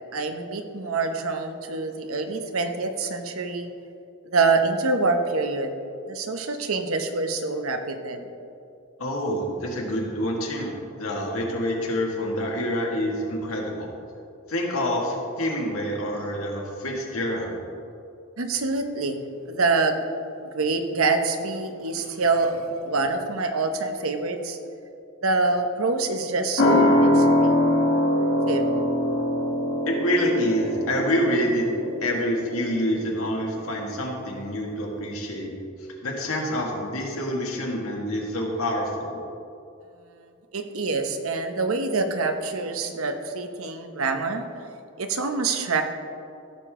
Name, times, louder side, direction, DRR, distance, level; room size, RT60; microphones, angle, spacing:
voice 1, 0.1-3.7 4.2-5.7 6.1-8.3 18.4-19.2 19.5-20.0 20.5-24.6 25.2-27.5 28.5-28.7 40.5-44.4 45.0-45.8, right 3 dB, 80° right, 6 dB, 0.9 m, -26 dB
voice 2, 9.0-13.9 14.5-17.6 29.9-31.7 32.0-35.5 36.0-39.2, equal, 90° left, -1 dB, 2.0 m, -27 dB
sound 1, 26.6-33.6 33.9-34.0, left 1 dB, 65° left, 1.5 m, -23 dB
15.0 x 6.8 x 3.7 m, 2.6 s
head